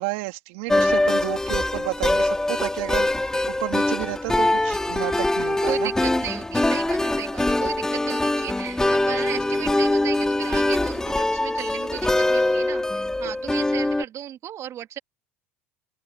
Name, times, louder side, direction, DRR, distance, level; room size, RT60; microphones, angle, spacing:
voice 1, 0.0-5.9 13.2-13.3, right 25 dB, 70° right, 3.0 m, -31 dB
sound 1, 0.7-14.0, left 2 dB, 10° left, 3.0 m, -23 dB
voice 2, 5.7-15.0, right 11 dB, 45° right, 2.7 m, -35 dB
open air
hypercardioid pair, 75°, 7 cm